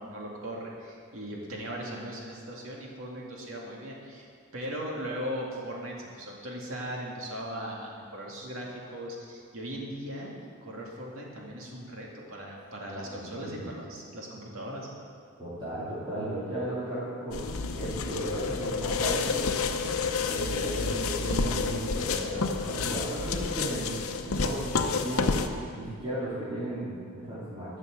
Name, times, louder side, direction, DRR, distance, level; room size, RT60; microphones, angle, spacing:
voice 1, 0.0-10.3 10.6-14.9, equal, 70° right, -2 dB, 2.4 m, -38 dB
voice 2, 13.1-13.7 15.4-19.5 20.3-27.8, right 1 dB, 25° right, -11 dB, 2.6 m, -35 dB
sound 1, 17.3-25.5, left 4 dB, 90° left, 0.8 m, -29 dB
13.0 x 6.4 x 7.9 m, 2.2 s
head